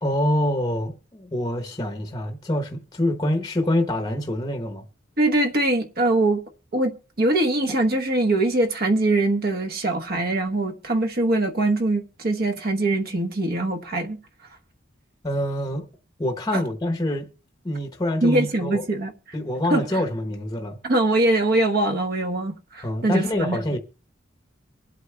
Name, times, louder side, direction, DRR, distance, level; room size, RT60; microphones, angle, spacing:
voice 1, 0.0-4.8 15.2-15.9 16.2-17.3 17.6-18.8 19.3-20.8 22.8-23.8, left 1 dB, 20° left, 0.8 m, -25 dB
voice 2, 5.2-6.4 6.7-14.2 16.5-16.6 18.2-19.1 19.7-19.8 20.8-23.6, right 2 dB, 50° right, 1.0 m, -22 dB
24.0 x 8.1 x 2.2 m
head